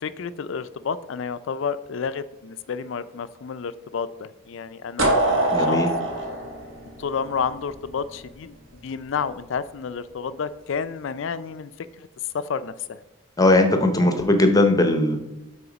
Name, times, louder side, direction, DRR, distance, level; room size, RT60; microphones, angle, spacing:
voice 1, 0.0-5.8 7.0-8.6 8.8-12.1 12.3-13.0, left 6 dB, 65° left, 14 dB, 0.4 m, -30 dB
sound 1, 5.0-7.8, right 1 dB, 70° right, 1.5 m, -23 dB
voice 2, 5.5-5.9 13.4-15.2, left 2 dB, 20° left, 7 dB, 0.7 m, -18 dB
6.9 x 4.3 x 5.0 m, 0.98 s
head